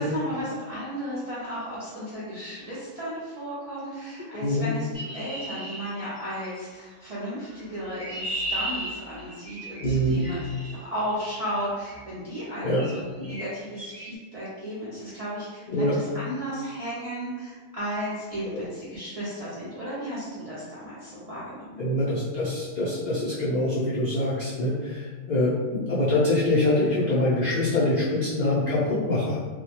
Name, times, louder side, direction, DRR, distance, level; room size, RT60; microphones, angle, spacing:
voice 1, 0.0-21.8, equal, 65° right, -10 dB, 0.3 m, -34 dB
voice 2, 4.3-4.7 9.8-10.2 12.6-12.8 15.7-15.9 18.5-18.6 21.8-29.4, left 1 dB, 80° left, -8 dB, 0.4 m, -24 dB
Chirp tweet, 4.9-6.6 7.6-10.7 11.8-12.1 12.7-13.0 13.2-13.5 13.8-14.1, right 1 dB, 15° right, 0.8 m, -35 dB
2.2 x 2.1 x 2.8 m, 1.4 s
omnidirectional pair, 1.4 m